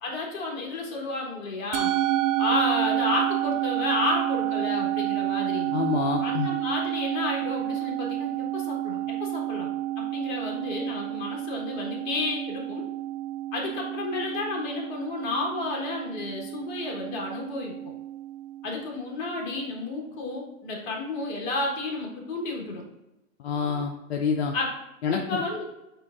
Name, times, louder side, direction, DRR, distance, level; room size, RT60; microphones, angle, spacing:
voice 1, 0.0-1.9 2.4-5.7 6.2-9.7 10.0-12.9 13.5-17.8 18.6-22.8 24.5-24.7 25.1-25.7, left 2 dB, 35° left, 0 dB, 1.2 m, -31 dB
Musical instrument, 1.7-20.2, right 13 dB, 70° right, 0.5 m, -30 dB
voice 2, 5.7-6.5 23.4-24.5 25.0-25.4, left 6 dB, 50° left, 2 dB, 0.5 m, -27 dB
7.4 x 2.6 x 2.4 m, 0.95 s
hypercardioid pair, 135°, 41 cm